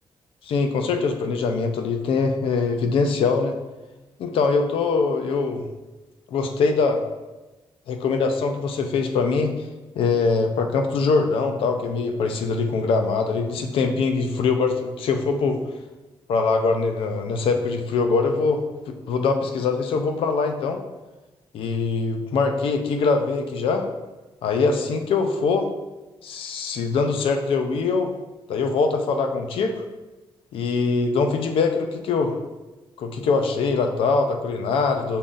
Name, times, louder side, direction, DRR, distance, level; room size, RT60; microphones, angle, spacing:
voice 1, 0.4-3.6 4.2-5.7 6.3-7.0 7.9-9.5 10.0-15.6 16.3-20.8 21.5-23.8 24.4-25.7 26.2-28.1 28.5-29.8 30.5-32.3 33.0-35.2, left 4 dB, 90° left, 5 dB, 0.5 m, -23 dB
5.5 x 2.5 x 3.8 m, 1.1 s
wide cardioid pair, 170°, 9 cm